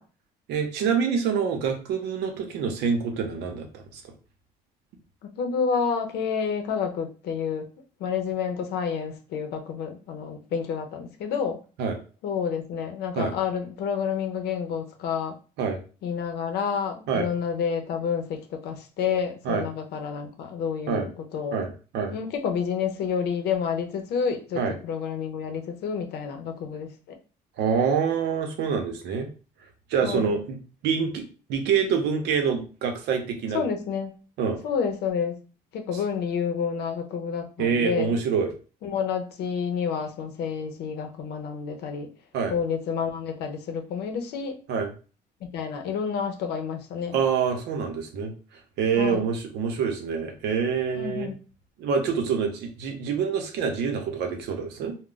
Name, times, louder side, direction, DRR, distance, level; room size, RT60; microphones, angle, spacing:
voice 1, 0.5-4.1 11.8-12.0 13.1-13.3 15.6-15.8 17.1-17.3 19.4-19.6 20.9-21.1 21.5-22.2 24.5-24.7 27.6-29.3 29.9-30.6 30.8-33.6 34.4-34.6 37.6-38.5 42.3-42.5 44.7-44.9 47.1-51.3 51.8-54.9, right 6 dB, 80° right, 5 dB, 0.7 m, -26 dB
voice 2, 5.2-7.7 8.0-11.6 12.2-15.3 16.0-21.6 22.1-27.2 30.0-30.3 33.5-34.1 34.6-35.4 35.7-38.1 38.8-42.1 42.5-44.6 45.4-47.2 49.0-49.3 50.9-51.4, left 6 dB, 75° left, 5 dB, 0.7 m, -29 dB
2.3 x 2.1 x 3.8 m, 0.35 s
cardioid pair, 110°, 17 cm